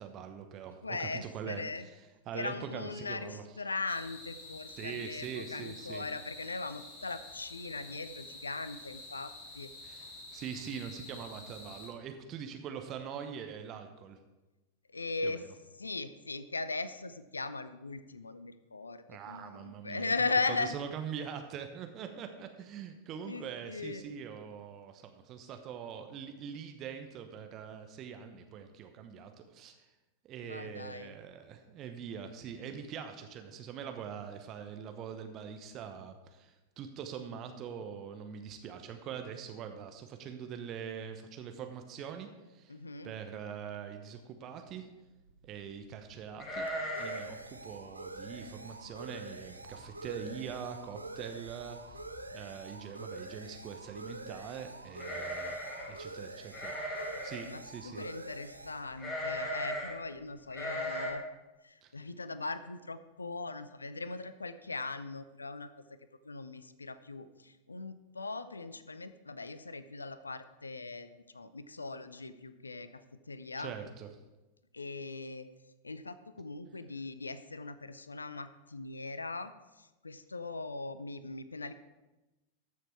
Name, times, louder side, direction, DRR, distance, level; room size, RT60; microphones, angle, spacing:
voice 1, 0.0-1.6 2.3-3.4 4.8-6.0 9.8-14.2 15.2-15.4 19.1-20.1 20.5-29.9 30.2-42.8 43.0-44.9 45.4-46.7 46.9-52.0 52.3-55.6 55.9-58.1 61.8-61.9 73.6-74.1, right 7 dB, 35° right, 6 dB, 1.0 m, -43 dB
voice 2, 0.8-1.9 2.3-9.7 14.9-15.5 15.8-20.7 23.3-24.0 30.4-31.2 42.7-43.1 55.1-55.3 57.4-61.2 61.6-65.8 66.2-73.0 73.3-73.7 74.7-75.5 75.8-81.7, left 3 dB, 80° left, 13 dB, 0.5 m, -39 dB
sound 1, 3.9-11.9, left 2 dB, 45° left, 3.6 m, -49 dB
sound 2, 45.0-60.4, right 2 dB, 80° right, 0.6 m, -47 dB
sound 3, 46.4-47.4 47.6-47.7 48.2-48.5 49.0-49.1 49.4-49.9 50.2-50.3 51.5-51.6 51.9-52.3 54.9-56.0 56.5-57.5 59.0-60.0 60.5-61.1, equal, 25° left, 2.5 m, -37 dB
14.0 x 6.5 x 4.7 m, 1.1 s
figure-of-eight pair, 90°, 0 cm